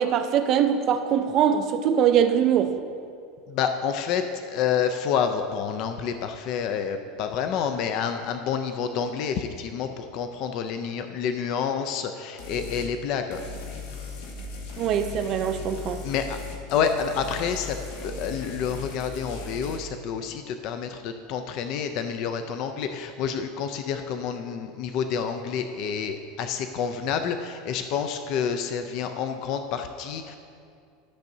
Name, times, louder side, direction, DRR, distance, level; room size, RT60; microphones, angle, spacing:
voice 1, 0.0-2.8 14.8-16.0, right 8 dB, 30° right, 8 dB, 0.4 m, -22 dB
voice 2, 3.5-4.2 4.5-13.4 16.0-16.4 16.7-17.8 18.0-30.4, left 7 dB, 40° left, 7 dB, 0.4 m, -28 dB
sound 1, 12.4-12.9 13.3-19.8, left 3 dB, 80° left, 1.3 m, -38 dB
13.0 x 6.6 x 2.7 m, 2.4 s
supercardioid pair, 180°, 0 cm